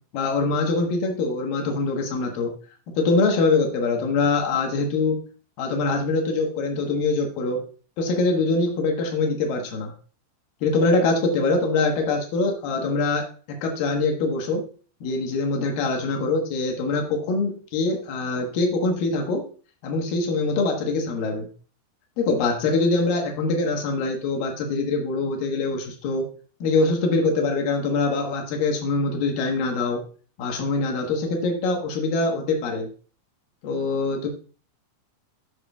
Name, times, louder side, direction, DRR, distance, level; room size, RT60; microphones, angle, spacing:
voice 1, 0.1-2.5 2.9-5.2 5.6-7.6 8.0-9.9 10.6-14.6 15.0-19.4 19.8-21.5 22.2-26.3 26.6-30.0 30.4-32.9 33.6-34.3, left 3 dB, 65° left, 2 dB, 2.2 m, -23 dB
11.0 x 6.0 x 2.3 m, 0.38 s
omnidirectional pair, 5.7 m